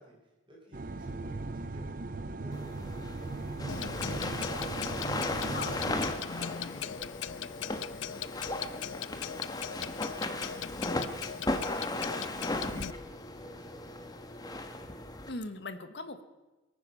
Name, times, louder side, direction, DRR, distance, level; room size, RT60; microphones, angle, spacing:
voice 1, 0.0-5.4 5.8-7.1 7.5-10.0 10.2-15.0, equal, 25° right, -2 dB, 4.3 m, -54 dB
sound 1, 0.7-6.1, right 2 dB, 45° right, 0.6 m, -38 dB
sound 2, 2.5-15.3, left 2 dB, 20° left, 1.1 m, -37 dB
Clock, 3.7-12.9, left 9 dB, 90° left, 0.4 m, -39 dB
voice 2, 3.7-4.0 5.4-5.8 15.3-16.2, left 2 dB, 65° left, 10 dB, 1.1 m, -40 dB
22.5 x 9.6 x 5.5 m, 1.1 s
head